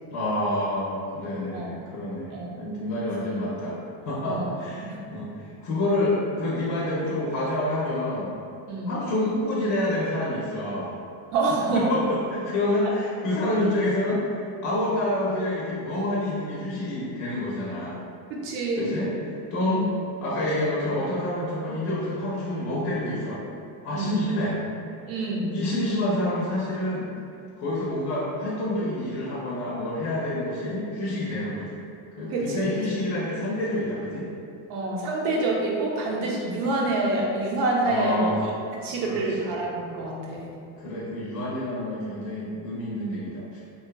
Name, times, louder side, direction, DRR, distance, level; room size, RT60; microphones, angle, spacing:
voice 1, 0.1-3.8 4.0-8.3 8.9-10.9 11.7-14.2 14.6-18.0 18.8-19.8 20.2-23.4 23.8-24.6 25.5-27.1 27.6-31.8 32.2-34.3 37.8-38.3 38.8-39.5 40.8-43.6, left 1 dB, 50° left, -6 dB, 0.6 m, -28 dB
voice 2, 2.3-2.7 4.2-4.5 4.8-5.1 8.7-9.0 11.3-11.9 12.8-12.9 18.3-18.9 19.6-19.9 23.9-24.3 25.1-25.6 32.3-32.6 34.7-38.3 38.7-40.5, right 2 dB, 85° right, -3 dB, 0.7 m, -27 dB
2.5 x 2.3 x 2.2 m, 2.5 s
supercardioid pair, 110°, 44 cm